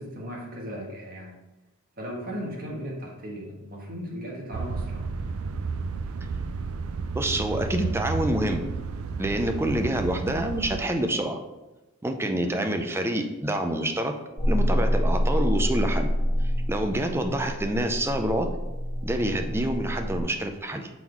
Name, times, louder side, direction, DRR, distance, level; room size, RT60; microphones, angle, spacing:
voice 1, 0.0-1.3 2.0-5.1 12.4-12.7, equal, 45° right, -2 dB, 1.4 m, -37 dB
sound 1, 4.5-10.8, right 4 dB, 85° right, 0.4 m, -32 dB
voice 2, 7.1-8.6 9.2-11.4 12.0-14.1 14.5-16.1 16.7-18.5 19.0-20.9, right 1 dB, 10° right, 5 dB, 0.5 m, -27 dB
sound 2, 14.4-20.2, equal, 30° left, 1.6 m, -27 dB
6.1 x 3.8 x 4.6 m, 1.0 s
head